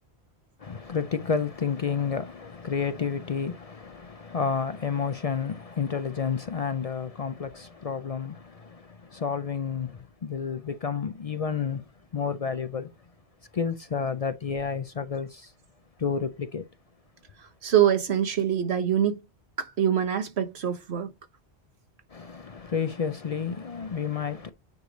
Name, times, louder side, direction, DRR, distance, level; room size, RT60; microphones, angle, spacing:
voice 1, 0.6-12.9 13.5-15.5 16.0-16.6 22.1-24.5, left 6 dB, 45° left, 0.5 m, -30 dB
voice 2, 17.4-19.2 19.6-21.1, right 9 dB, 85° right, 1.4 m, -24 dB
9.5 x 3.2 x 3.8 m
omnidirectional pair, 1.1 m